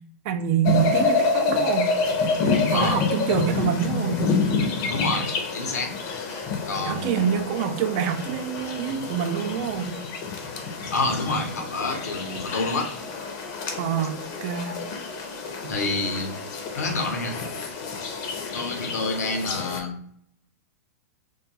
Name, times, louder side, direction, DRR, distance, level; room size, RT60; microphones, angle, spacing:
voice 1, 0.2-1.9 2.7-4.2 6.8-10.0 13.8-14.8, right 8 dB, 45° right, 9 dB, 0.4 m, -26 dB
sound 1, 0.6-19.8, left 4 dB, 40° left, 0.6 m, -28 dB
voice 2, 2.7-3.0 4.9-6.0 6.7-7.4 10.9-12.9 15.7-16.3 16.8-17.4 18.5-19.9, left 3 dB, 85° left, 4 dB, 0.7 m, -28 dB
2.2 x 2.2 x 2.8 m, 0.65 s
hypercardioid pair, 135°, 9 cm